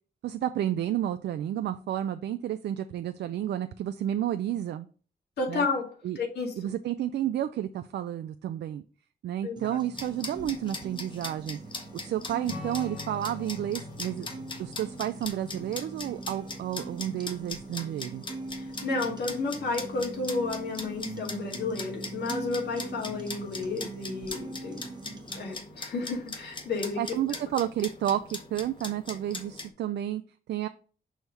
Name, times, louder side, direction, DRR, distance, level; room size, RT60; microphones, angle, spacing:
voice 1, 0.2-4.9 5.5-5.7 6.0-6.2 6.6-8.8 9.2-11.6 11.9-14.3 14.6-18.2 27.0-30.2 30.5-30.7, right 11 dB, 85° right, 0.4 m, -31 dB
voice 2, 5.4-6.5 9.4-9.8 18.6-24.8 25.3-27.0, left 3 dB, 75° left, 2.2 m, -32 dB
sound 1, 9.6-25.6, right 3 dB, 25° right, 0.9 m, -42 dB
sound 2, 9.9-29.7, left 3 dB, 30° left, 0.9 m, -41 dB
Strum, 12.5-17.1, left 3 dB, 60° left, 2.0 m, -45 dB
6.3 x 3.4 x 5.4 m
wide cardioid pair, 165°, 17 cm